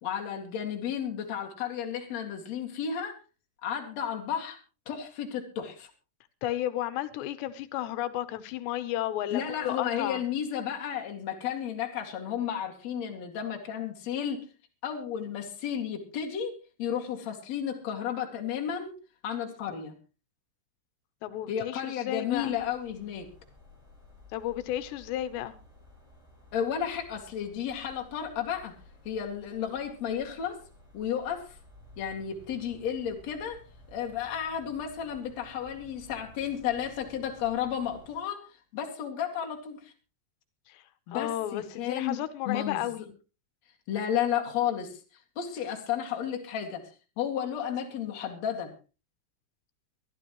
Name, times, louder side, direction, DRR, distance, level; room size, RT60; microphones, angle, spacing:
voice 1, 0.0-3.2 3.6-4.6 4.9-5.9 9.3-14.5 14.8-18.9 19.2-20.0 21.5-23.3 26.5-28.8 29.0-30.6 30.9-31.6 32.0-33.6 33.9-38.4 38.7-39.9 41.1-42.8 43.9-45.0 45.4-46.9 47.2-48.7, left 9 dB, 45° left, 3.0 m, -33 dB
voice 2, 6.4-10.2 21.2-22.5 24.3-25.6 40.7-40.8 41.1-43.1, left 13 dB, 90° left, 3.2 m, -33 dB
sound 1, 22.3-38.2, left 1 dB, 5° right, 5.0 m, -55 dB
23.0 x 12.5 x 3.1 m
omnidirectional pair, 4.8 m